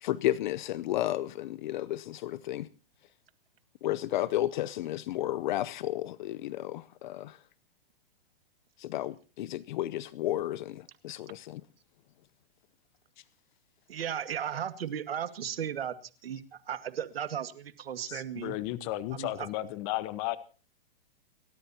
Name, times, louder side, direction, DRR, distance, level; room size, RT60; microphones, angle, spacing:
voice 1, 0.0-2.7 3.8-7.4 8.8-11.6, left 14 dB, 50° left, 0.8 m, -32 dB
voice 2, 13.9-15.9 16.2-16.4 16.7-18.6 19.1-19.5, right 9 dB, 80° right, 2.1 m, -35 dB
voice 3, 18.1-20.4, left 15 dB, 35° left, 1.2 m, -34 dB
29.5 x 13.0 x 2.9 m
hypercardioid pair, 130°, 29 cm